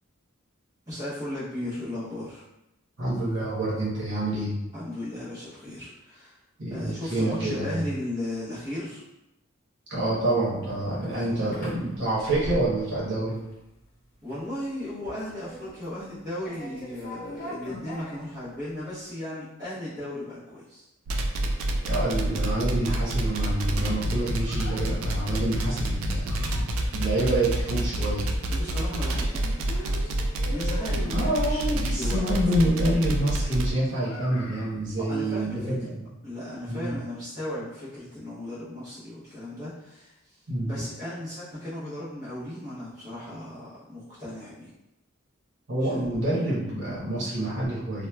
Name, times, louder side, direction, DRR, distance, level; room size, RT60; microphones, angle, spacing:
voice 1, 0.9-2.4 4.7-6.4 6.7-9.0 11.3-11.5 14.2-20.9 21.4-21.6 28.5-30.2 30.4-32.2 35.0-35.9 36.2-44.7 45.8-46.2, left 1 dB, 15° right, -14 dB, 0.9 m, -36 dB
voice 2, 3.0-4.6 6.6-7.7 9.9-13.4 17.7-17.8 21.9-28.3 29.4-29.5 31.0-36.0 36.7-36.9 40.5-40.8 45.7-48.1, right 1 dB, 60° right, -8 dB, 0.9 m, -27 dB
sound 1, 10.5-13.0 13.3-13.8 14.2-14.5 14.8-16.2 16.4-18.7, equal, 45° left, 0.8 m, -40 dB
sound 2, 21.1-33.7, right 1 dB, 75° right, 0.3 m, -27 dB
Child speech kid speaking, 22.9-24.8 25.8-27.0 28.1-29.3 29.6-31.4 33.9-34.8, left 3 dB, 80° left, 0.4 m, -43 dB
3.0 x 2.1 x 2.2 m, 0.91 s
head